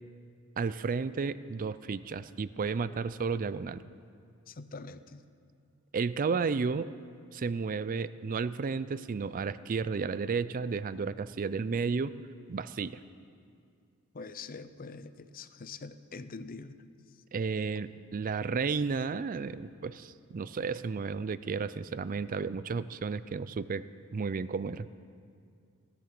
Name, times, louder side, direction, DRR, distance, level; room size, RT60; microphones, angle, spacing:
voice 1, 0.6-3.8 5.9-6.9 7.3-12.1 12.5-13.0 17.3-23.8 24.1-24.9, right 5 dB, 40° right, 15 dB, 0.4 m, -32 dB
voice 2, 4.5-5.2 14.1-16.8, left 4 dB, 40° left, 13 dB, 0.6 m, -44 dB
16.5 x 14.0 x 6.0 m, 2.3 s
head